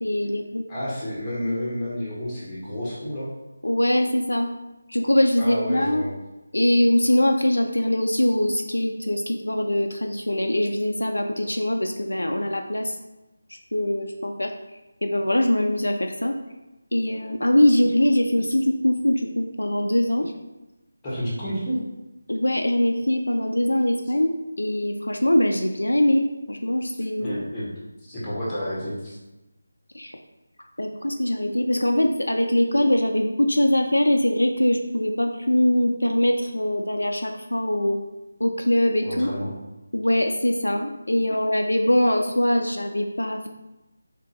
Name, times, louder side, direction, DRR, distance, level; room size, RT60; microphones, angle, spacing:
voice 1, 0.0-0.6 3.6-4.5 4.9-6.1 6.5-13.0 13.7-14.5 15.0-16.4 16.9-20.3 22.3-27.3 29.9-30.2 30.8-38.0 38.4-39.3 39.9-43.5, left 1 dB, 75° left, 4 dB, 0.3 m, -22 dB
voice 2, 0.7-3.3 5.4-6.1 21.0-21.8 27.2-27.7 28.0-29.2 39.0-39.5, equal, 10° left, -8 dB, 1.0 m, -30 dB
3.5 x 2.6 x 2.8 m, 1.0 s
figure-of-eight pair, 160°, 0 cm